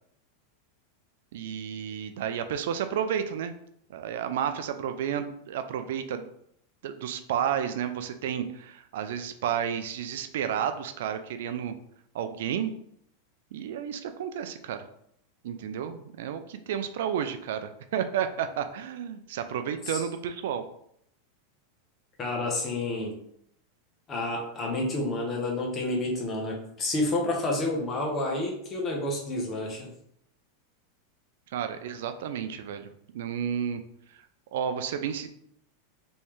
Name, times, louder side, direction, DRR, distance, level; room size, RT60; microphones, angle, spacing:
voice 1, 1.3-3.5 3.9-6.3 6.8-11.7 12.1-12.7 13.5-14.9 15.4-20.7 31.5-32.9 33.1-33.8 34.5-35.3, right 8 dB, 75° right, 9 dB, 0.4 m, -31 dB
voice 2, 22.2-23.1 24.1-29.9, left 2 dB, 30° left, -1 dB, 1.1 m, -29 dB
3.2 x 3.1 x 3.1 m, 0.71 s
hypercardioid pair, 120°, 0 cm